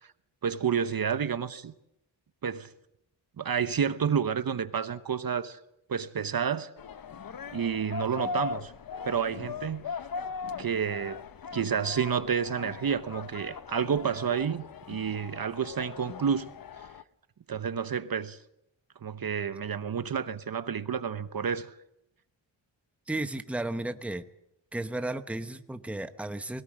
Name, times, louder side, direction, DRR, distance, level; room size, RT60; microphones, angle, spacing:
voice 1, 0.4-1.7 2.4-2.7 3.4-5.6 5.9-6.7 7.5-8.7 9.0-9.8 10.6-11.2 11.5-16.5 16.8-16.9 17.5-18.4 19.0-21.8, right 7 dB, 50° right, 0.9 m, -30 dB
sound 1, 6.8-17.0, left 5 dB, 50° left, 0.8 m, -39 dB
voice 2, 23.1-24.2 24.7-26.6, right 2 dB, 5° right, 0.9 m, -34 dB
21.0 x 18.5 x 7.5 m
wide cardioid pair, 110°, 47 cm